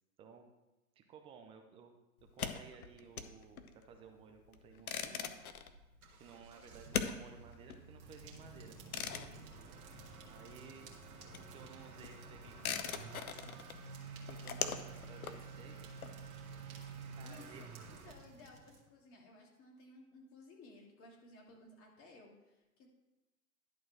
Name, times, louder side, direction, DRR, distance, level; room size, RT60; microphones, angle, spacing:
voice 1, 0.2-0.5 1.0-1.9 2.3-5.4 6.2-9.5 10.3-10.9 11.4-13.6 14.3-16.1 16.6-17.7, right 6 dB, 15° right, 4 dB, 0.4 m, -57 dB
sound 1, 2.2-10.6 10.8-16.6, left 7 dB, 75° left, 1.0 m, -43 dB
Motor vehicle (road) / Accelerating revving vroom, 5.5-18.1, right 5 dB, 75° right, 1.5 m, -52 dB
sound 2, 8.0-18.9, right 2 dB, 40° right, 2.0 m, -57 dB
voice 2, 17.2-22.9, left 2 dB, 30° left, -1 dB, 2.6 m, -58 dB
11.5 x 4.6 x 6.2 m, 1.0 s
hypercardioid pair, 115°, 44 cm